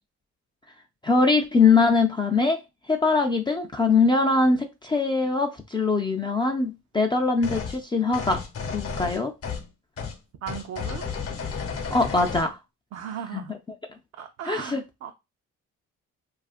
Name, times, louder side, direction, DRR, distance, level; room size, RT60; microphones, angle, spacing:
voice 1, 1.0-2.6 2.9-8.4 8.7-9.3 11.9-12.6 13.3-13.4 14.5-14.8, left 4 dB, 15° left, 0.3 m, -22 dB
sound 1, 7.4-7.8 8.1-9.7 10.0-10.2 10.5-12.5, left 5 dB, 50° left, 0.8 m, -32 dB
voice 2, 10.4-11.0 12.9-13.5 14.2-15.1, right 8 dB, 60° right, 0.5 m, -36 dB
2.7 x 2.4 x 2.4 m
cardioid pair, 90°, 30 cm